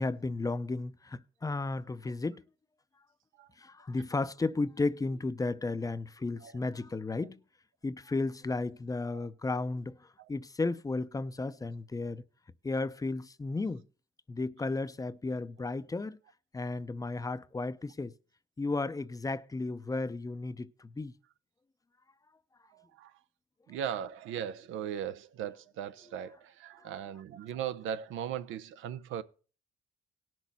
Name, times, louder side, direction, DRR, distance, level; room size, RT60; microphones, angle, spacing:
voice 1, 0.0-2.4 3.6-7.4 7.8-10.0 10.3-12.2 12.6-13.8 14.3-16.2 16.5-18.1 18.6-21.1 26.8-26.9, left 3 dB, 20° left, 0.5 m, -34 dB
voice 2, 22.7-23.1 23.7-29.2, right 9 dB, 85° right, 0.6 m, -38 dB
18.0 x 6.2 x 4.0 m
cardioid pair, 90°, 20 cm